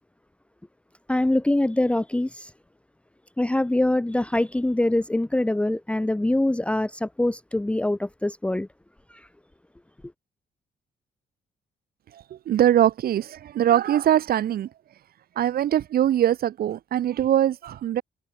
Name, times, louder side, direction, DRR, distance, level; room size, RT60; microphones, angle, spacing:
voice 1, 1.1-2.5 3.4-8.7, left 1 dB, 5° left, 1.0 m, -24 dB
voice 2, 12.1-14.7 15.4-18.0, right 11 dB, 60° right, 0.7 m, -22 dB
wide cardioid pair, 165°, 18 cm